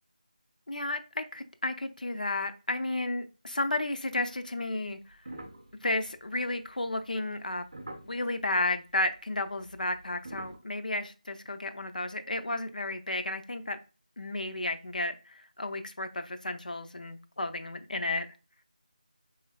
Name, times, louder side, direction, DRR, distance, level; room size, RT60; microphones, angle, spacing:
voice 1, 0.7-5.0 5.8-7.6 8.1-13.8 14.2-18.3, left 2 dB, 70° left, 0.5 m, -32 dB
sound 1, 5.1-8.4 9.5-10.6, right 1 dB, 45° right, 0.6 m, -45 dB
4.4 x 3.1 x 2.3 m
figure-of-eight pair, 175°, 5 cm